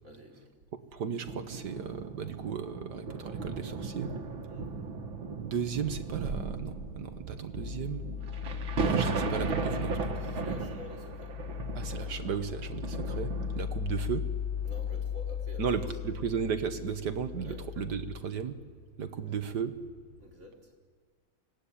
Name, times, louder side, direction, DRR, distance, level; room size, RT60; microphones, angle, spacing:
voice 1, 0.0-0.5 4.5-4.7 10.2-11.3 14.6-16.2 17.4-17.6 19.1-19.4 20.2-20.7, left 2 dB, 35° right, 0 dB, 4.7 m, -49 dB
voice 2, 0.9-4.1 5.4-8.0 8.8-10.4 11.7-14.3 15.6-18.6 19.0-19.7, right 7 dB, 60° right, 9 dB, 1.7 m, -35 dB
sound 1, 1.2-20.3, left 1 dB, 35° left, 5.1 m, -56 dB
sound 2, 1.2-14.0 14.7-14.8, right 4 dB, 90° right, 2.4 m, -36 dB
sound 3, 7.5-18.2, left 9 dB, 15° left, 1.4 m, -37 dB
25.0 x 18.5 x 9.9 m, 1.5 s
omnidirectional pair, 2.1 m